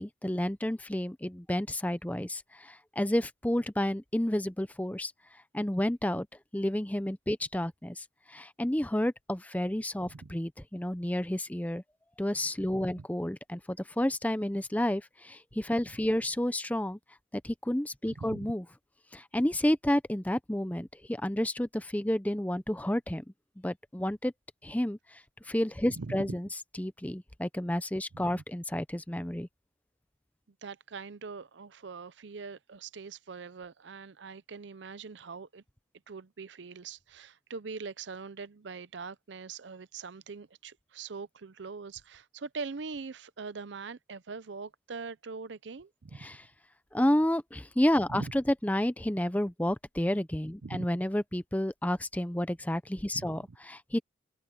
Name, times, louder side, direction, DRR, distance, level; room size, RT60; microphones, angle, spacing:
voice 1, 0.0-5.1 5.5-6.3 6.5-11.8 12.2-17.0 17.4-18.6 19.1-23.2 23.6-24.3 24.6-25.2 25.5-26.5 26.8-29.5 46.2-46.4 46.9-53.4 53.7-54.0, left 1 dB, 10° left, 0.6 m, -30 dB
voice 2, 10.0-10.4 12.8-13.0 18.1-18.5 25.9-26.3 28.1-28.4 30.6-35.6 36.1-46.4 48.1-48.3 50.6-50.9 53.1-53.4, right 4 dB, 75° right, 0.6 m, -42 dB
head